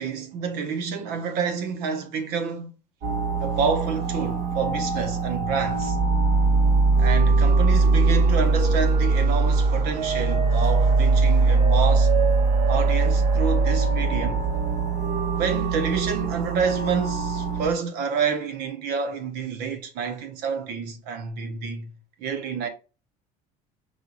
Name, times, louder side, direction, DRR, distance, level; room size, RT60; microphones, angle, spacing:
voice 1, 0.0-2.7 3.4-6.0 7.0-12.1 12.7-14.4 15.4-22.7, right 5 dB, 70° right, 1.1 m, -28 dB
sound 1, 3.0-17.7, right 3 dB, 50° right, 1.6 m, -21 dB
5.4 x 3.3 x 2.7 m
cardioid pair, 130°, 17 cm